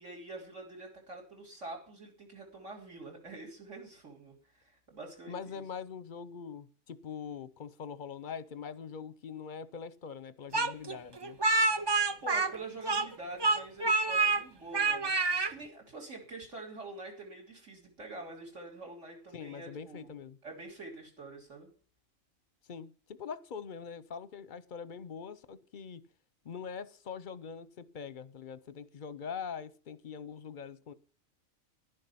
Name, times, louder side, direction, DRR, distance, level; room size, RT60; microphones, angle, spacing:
voice 1, 0.0-5.6 12.2-20.1 20.4-21.7, right 2 dB, 60° right, 3 dB, 3.6 m, -46 dB
voice 2, 5.3-11.4 19.3-20.4 22.7-26.0 26.4-30.9, left 6 dB, 45° left, 15 dB, 0.8 m, -43 dB
Speech, 10.5-13.1 13.4-14.4 14.7-15.5, right 3 dB, 30° right, 0.4 m, -27 dB
11.0 x 10.5 x 5.7 m, 0.40 s
omnidirectional pair, 1.4 m